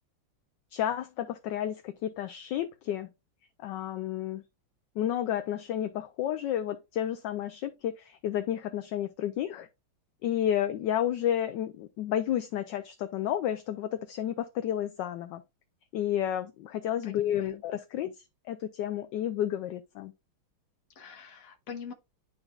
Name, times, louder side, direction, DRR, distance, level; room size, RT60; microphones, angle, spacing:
voice 1, 0.7-3.1 3.6-4.4 5.0-9.7 10.2-15.4 15.9-18.1 18.5-20.1, left 11 dB, 70° left, 1.1 m, -31 dB
voice 2, 17.0-17.6 21.0-21.9, left 7 dB, 50° left, 1.4 m, -43 dB
11.0 x 4.0 x 2.3 m
omnidirectional pair, 2.2 m